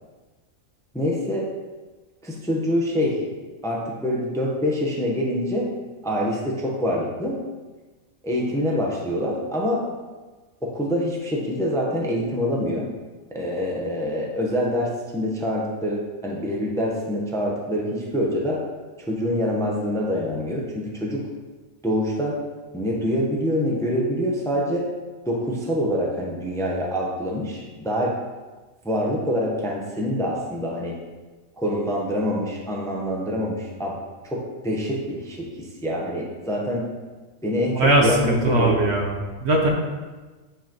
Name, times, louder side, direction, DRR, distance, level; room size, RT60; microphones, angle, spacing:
voice 1, 0.9-1.5 2.2-3.2 3.6-5.7 6.0-7.4 8.2-9.8 10.6-12.9 13.3-18.6 19.0-21.2 21.8-22.4 22.7-24.8 25.3-28.1 28.8-31.0 31.6-34.0 34.2-36.8 37.4-38.8, equal, 5° left, -2 dB, 0.8 m, -25 dB
voice 2, 37.7-39.7, right 1 dB, 55° right, 0 dB, 1.1 m, -20 dB
8.9 x 4.9 x 3.0 m, 1.3 s
omnidirectional pair, 1.4 m